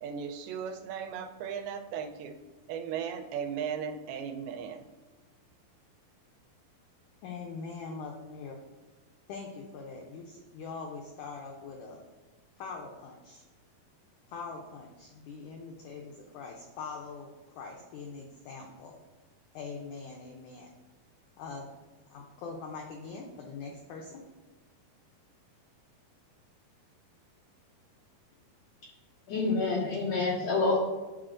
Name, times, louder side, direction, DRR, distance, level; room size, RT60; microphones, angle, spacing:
voice 1, 0.0-2.4 2.7-4.9, right 7 dB, 90° right, 5 dB, 2.5 m, -36 dB
voice 2, 7.2-8.6 9.3-12.0 12.6-13.4 14.3-19.0 19.5-20.7 21.4-21.7 22.1-24.2, left 4 dB, 85° left, 1 dB, 1.7 m, -42 dB
voice 3, 29.3-30.8, left 3 dB, 60° left, -5 dB, 2.2 m, -27 dB
11.0 x 4.2 x 2.5 m, 1.2 s
omnidirectional pair, 4.3 m